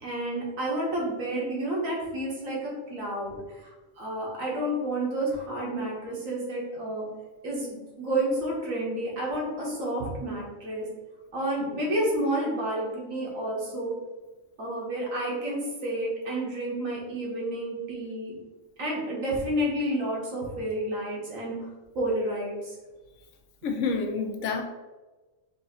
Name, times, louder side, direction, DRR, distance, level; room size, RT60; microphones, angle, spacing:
voice 1, 0.0-3.4 4.0-7.1 7.4-10.9 11.3-13.9 14.6-18.4 18.8-21.6 22.0-22.8, right 1 dB, 85° right, -4 dB, 1.7 m, -30 dB
voice 2, 23.6-24.6, left 4 dB, 70° left, 5 dB, 0.9 m, -28 dB
4.6 x 2.6 x 4.2 m, 1.2 s
omnidirectional pair, 1.4 m